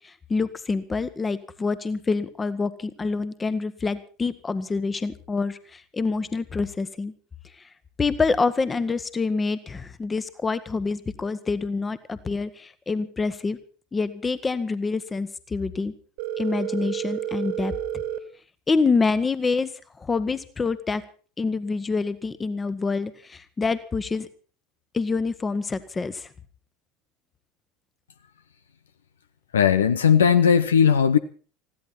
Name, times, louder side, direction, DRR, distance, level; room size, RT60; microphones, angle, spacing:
voice 1, 0.3-7.1 8.0-13.6 13.9-15.9 16.4-17.7 18.7-19.7 20.0-21.0 21.4-24.3 24.9-26.3, left 4 dB, 20° left, 1.4 m, -26 dB
Telephone, 16.2-18.2, right 10 dB, 60° right, 2.0 m, -30 dB
voice 2, 29.5-31.2, left 7 dB, 70° left, 0.8 m, -17 dB
20.5 x 15.5 x 4.2 m
figure-of-eight pair, 70°, 0 cm